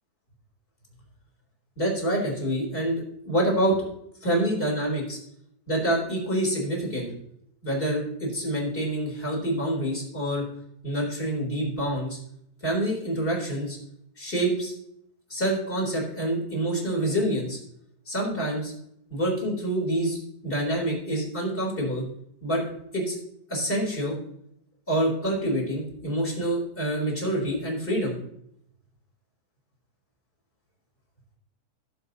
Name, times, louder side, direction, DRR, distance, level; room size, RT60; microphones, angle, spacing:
voice 1, 1.8-3.9 4.2-5.2 5.7-7.1 7.6-10.4 10.8-12.2 12.6-13.8 14.2-14.7 15.3-17.6 18.1-18.7 19.1-20.2 20.4-22.0 22.4-22.6 22.9-23.2 23.5-24.2 24.9-28.2, right 1 dB, 15° left, -2 dB, 3.8 m, -27 dB
18.0 x 7.7 x 2.9 m, 0.73 s
omnidirectional pair, 4.0 m